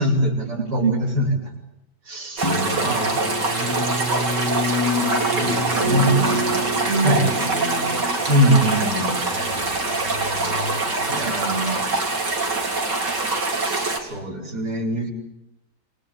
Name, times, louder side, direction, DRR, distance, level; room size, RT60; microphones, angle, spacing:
voice 1, 0.0-1.5 2.1-2.5 2.8-3.5 5.2-6.1 7.0-7.3 8.3-9.2 11.1-12.0 13.6-15.1, equal, 65° right, -1 dB, 5.5 m, -23 dB
Drum, 2.4-11.7, left 1 dB, 15° left, 6.6 m, -29 dB
sound 1, 2.4-14.0, right 3 dB, 85° right, 4.7 m, -24 dB
voice 2, 5.0-8.1 11.2-11.8, right 4 dB, 40° right, 5 dB, 2.9 m, -27 dB
29.0 x 23.0 x 8.7 m, 0.88 s
omnidirectional pair, 1.8 m